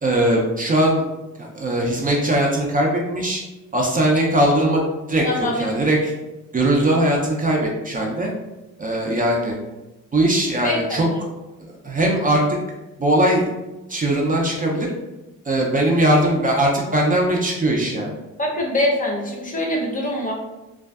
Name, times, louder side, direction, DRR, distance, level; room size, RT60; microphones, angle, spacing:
voice 1, 0.0-1.0 1.4-3.4 3.7-4.8 5.1-6.1 6.5-8.3 8.8-9.6 10.1-11.1 11.8-12.6 13.0-13.5 13.9-14.9 15.4-18.1, right 1 dB, 30° right, -2 dB, 0.4 m, -20 dB
voice 2, 5.2-5.6 10.5-11.2 18.4-20.3, left 1 dB, 25° left, -1 dB, 0.6 m, -24 dB
2.5 x 2.2 x 2.2 m, 1.0 s
cardioid pair, 90°, 30 cm